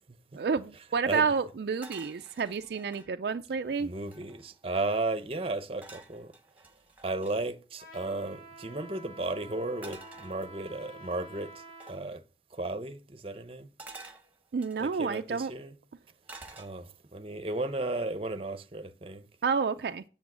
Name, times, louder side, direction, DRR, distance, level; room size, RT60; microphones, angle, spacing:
voice 1, 0.4-3.9 14.5-15.5 19.4-20.0, right 5 dB, 55° right, 0.3 m, -29 dB
sound 1, 1.8-3.1 3.7-3.8 4.0-4.6 5.8-7.4 9.8-10.9 11.8-12.1 13.8-15.0 16.3-17.1 17.5-17.9, right 3 dB, 10° right, 1.3 m, -50 dB
voice 2, 3.8-6.3 7.0-11.5 11.9-12.2 12.5-13.7 14.8-15.7 16.6-19.3, right 2 dB, 30° right, 0.7 m, -34 dB
Trumpet, 7.8-12.0, right 2 dB, 50° left, 4.4 m, -49 dB
8.2 x 7.0 x 6.1 m
head